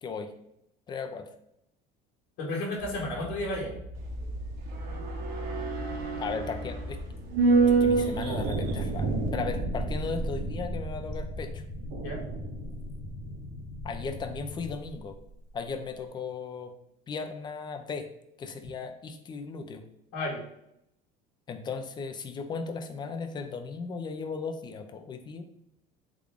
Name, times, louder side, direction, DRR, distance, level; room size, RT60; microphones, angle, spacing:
voice 1, 0.9-1.3 6.2-7.0 7.8-11.6 13.8-15.2 15.5-16.7 17.1-18.1 18.4-19.8 21.5-25.4, left 5 dB, 25° left, 7 dB, 0.4 m, -36 dB
voice 2, 2.4-3.7 12.0-12.2 20.1-20.4, left 1 dB, 75° left, -6 dB, 1.4 m, -32 dB
sound 1, 2.8-14.7, left 2 dB, 55° left, 0.8 m, -41 dB
sound 2, 4.0-14.4 14.7-14.8, right 4 dB, 55° right, 0.8 m, -29 dB
3.6 x 2.3 x 3.4 m, 0.78 s
cardioid pair, 130°, 18 cm